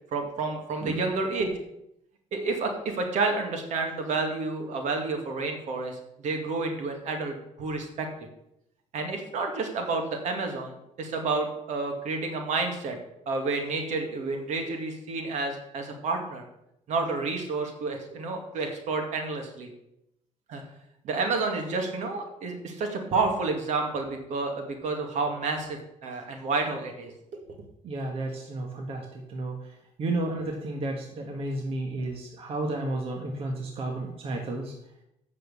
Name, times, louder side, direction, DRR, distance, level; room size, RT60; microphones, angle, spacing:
voice 1, 0.1-1.5 2.3-8.1 8.9-13.0 13.3-16.4 16.9-19.7 20.5-20.6 21.0-27.1, right 3 dB, 70° right, 4 dB, 2.2 m, -30 dB
voice 2, 27.8-29.5 30.0-34.7, right 2 dB, 50° right, 2 dB, 1.5 m, -32 dB
8.4 x 6.5 x 7.0 m, 0.82 s
cardioid pair, 130°, 13 cm